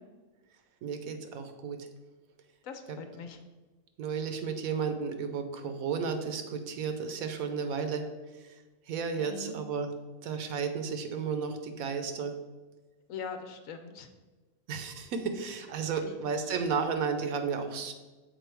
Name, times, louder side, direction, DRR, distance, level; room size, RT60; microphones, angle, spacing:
voice 1, 0.8-1.8 2.9-3.0 4.0-8.0 8.9-9.9 10.2-12.3 14.7-17.9, right 5 dB, 75° right, 7 dB, 1.1 m, -33 dB
voice 2, 2.6-3.4 9.1-9.6 13.1-14.1 16.0-16.2, left 5 dB, 70° left, 7 dB, 1.0 m, -42 dB
6.8 x 4.2 x 4.5 m, 1.2 s
omnidirectional pair, 1.5 m